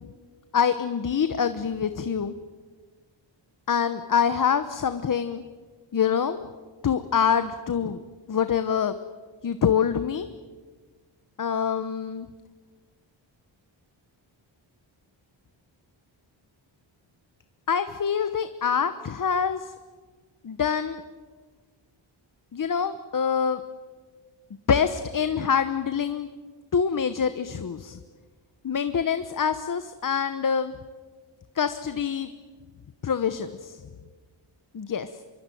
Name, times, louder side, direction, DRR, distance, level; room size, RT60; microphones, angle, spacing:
voice 1, 0.5-2.4 3.7-5.4 5.9-6.4 6.8-9.0 9.4-10.3 11.4-12.3 17.7-19.7 20.4-21.0 22.5-23.6 24.7-26.3 26.7-28.0 28.6-30.7 31.6-32.3 33.0-33.8 34.7-35.1, left 7 dB, 40° left, 11 dB, 1.0 m, -25 dB
25.0 x 23.0 x 9.2 m, 1.5 s
wide cardioid pair, 130°, 48 cm